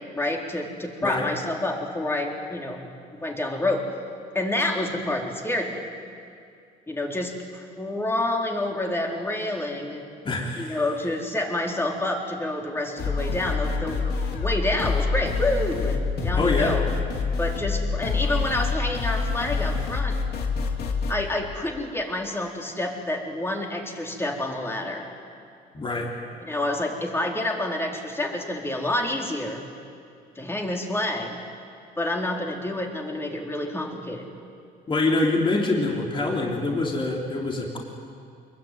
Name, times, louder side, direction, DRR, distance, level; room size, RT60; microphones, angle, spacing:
voice 1, 0.1-3.9 4.3-5.9 6.9-10.0 10.6-16.8 17.4-20.2 21.1-25.1 26.4-29.6 30.4-31.4 32.0-34.3, left 1 dB, 15° left, 0 dB, 4.2 m, -28 dB
voice 2, 10.2-10.8 16.3-16.8 25.7-26.1 34.9-37.8, left 2 dB, 30° left, -1 dB, 4.0 m, -25 dB
sound 1, 13.0-21.1, left 4 dB, 70° left, 3.3 m, -26 dB
25.0 x 22.5 x 9.5 m, 2.4 s
cardioid pair, 110°, 17 cm